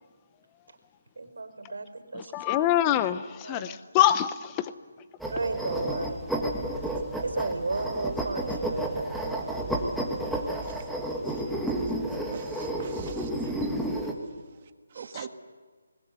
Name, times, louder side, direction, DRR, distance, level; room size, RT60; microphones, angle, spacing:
voice 1, 1.2-2.7 3.4-3.8 5.3-6.3 7.2-10.0 14.9-15.1, right 3 dB, 85° right, 9 dB, 3.9 m, -34 dB
voice 2, 2.1-4.7 15.1-15.3, left 12 dB, 15° left, 14 dB, 0.8 m, -25 dB
sound 1, 5.2-14.1, right 1 dB, ahead, 1.5 m, -31 dB
voice 3, 12.3-13.3 14.9-15.3, right 7 dB, 30° right, 8 dB, 1.5 m, -42 dB
25.0 x 20.0 x 8.2 m, 1.5 s
hypercardioid pair, 170°, 0 cm